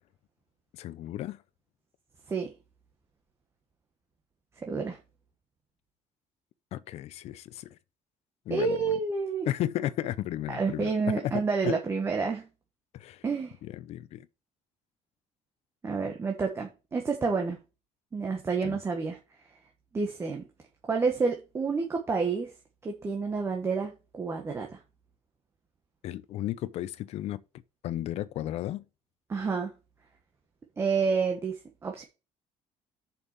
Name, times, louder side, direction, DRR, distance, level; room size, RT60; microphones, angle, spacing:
voice 1, 0.7-1.4 6.7-7.7 8.5-8.8 9.5-10.9 11.2-11.3 11.6-11.7 12.9-13.2 13.6-14.3 18.6-18.8 26.0-27.4 27.8-28.8, left 13 dB, 55° left, 0.7 m, -34 dB
voice 2, 4.6-5.0 8.5-9.5 10.5-12.4 13.2-13.6 15.8-17.6 18.1-19.2 19.9-20.4 20.9-22.5 22.8-24.8 29.3-29.7 30.8-32.0, right 4 dB, 20° right, 1.3 m, -29 dB
6.9 x 5.5 x 6.8 m
cardioid pair, 170°, 13 cm